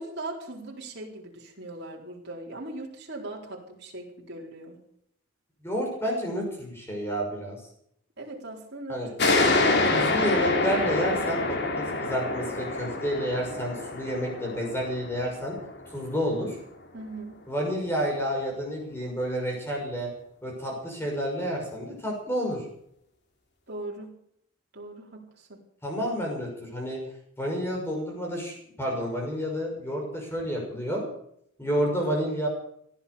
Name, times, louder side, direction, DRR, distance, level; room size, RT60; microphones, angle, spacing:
voice 1, 0.0-4.8 8.2-10.0 16.9-17.4 23.7-24.2 24.7-25.6, right 2 dB, 50° right, -1 dB, 4.1 m, -39 dB
voice 2, 5.6-7.6 8.9-9.1 9.9-15.6 15.9-16.6 17.5-20.1 20.4-22.7 25.8-27.0 27.4-31.0 31.6-32.5, equal, 10° left, 0 dB, 6.2 m, -30 dB
sound 1, 9.2-16.4, left 2 dB, 50° left, 2.4 m, -27 dB
17.5 x 12.0 x 7.0 m, 0.70 s
head